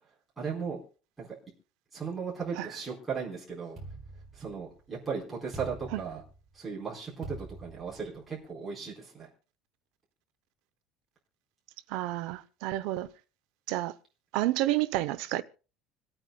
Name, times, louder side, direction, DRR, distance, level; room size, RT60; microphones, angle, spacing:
voice 1, 0.4-0.8 1.2-1.4 1.9-3.8 4.3-6.2 6.5-9.3, right 5 dB, 5° right, 4.3 m, -36 dB
sound 1, 3.8-4.9 5.5-6.6 7.2-8.3, right 2 dB, 25° right, 3.8 m, -45 dB
voice 2, 11.9-13.1 13.7-13.9 14.3-15.4, right 16 dB, 65° right, 0.7 m, -30 dB
27.0 x 9.0 x 2.3 m
cardioid pair, 180°, 0 cm